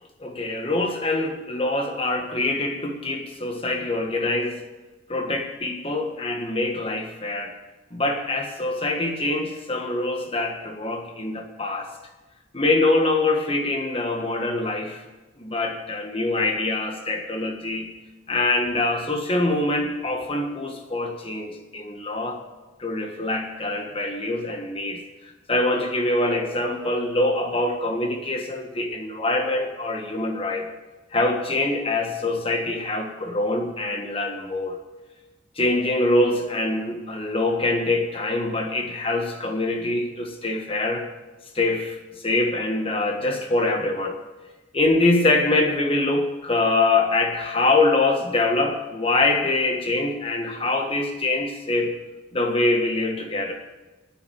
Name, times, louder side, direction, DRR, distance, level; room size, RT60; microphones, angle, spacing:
voice 1, 0.2-4.6 5.1-7.5 7.9-11.9 12.5-15.0 15.4-17.9 18.3-22.4 22.8-25.0 25.5-30.7 31.1-34.8 35.6-41.0 41.5-42.0 42.2-44.2 44.7-52.0 52.3-53.5, left 2 dB, 30° left, 4 dB, 1.6 m, -24 dB
9.6 x 9.1 x 8.7 m, 1.1 s
head